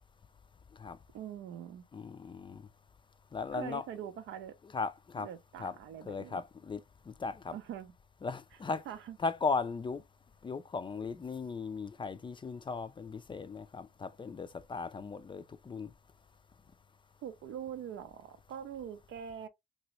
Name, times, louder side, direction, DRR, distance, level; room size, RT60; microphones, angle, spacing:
voice 1, 1.1-1.9 3.5-4.6 5.2-6.4 7.5-7.9 8.9-9.2 17.2-19.5, right 9 dB, 80° right, 0.5 m, -43 dB
voice 2, 1.9-2.6 3.3-3.8 4.6-5.3 5.6-5.8 6.1-6.8 7.1-7.6 8.2-8.8 9.2-10.0 10.4-15.9, left 4 dB, 25° left, 0.4 m, -37 dB
2.9 x 2.7 x 3.0 m
cardioid pair, 90°, 20 cm